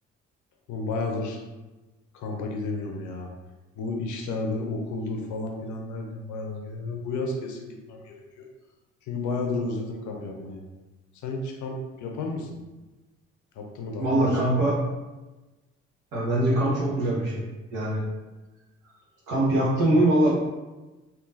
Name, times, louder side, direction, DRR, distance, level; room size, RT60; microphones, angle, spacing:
voice 1, 0.7-1.4 2.1-3.3 3.8-8.5 9.1-10.6 11.2-12.6 13.5-14.5, left 3 dB, 55° left, 2 dB, 0.6 m, -32 dB
voice 2, 14.0-14.7 16.1-18.0 19.3-20.3, right 1 dB, 60° right, -4 dB, 1.2 m, -23 dB
3.6 x 2.7 x 2.5 m, 1.1 s
figure-of-eight pair, 45°, 37 cm